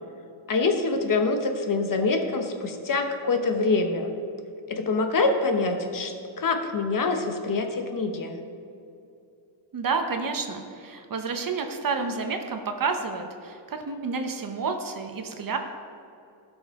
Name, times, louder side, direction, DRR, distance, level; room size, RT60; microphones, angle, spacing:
voice 1, 0.5-4.1 4.7-8.4, left 3 dB, 40° left, 5 dB, 0.9 m, -25 dB
voice 2, 9.7-15.6, right 4 dB, 45° right, 5 dB, 0.9 m, -30 dB
16.5 x 6.3 x 3.6 m, 2.6 s
wide cardioid pair, 170°, 49 cm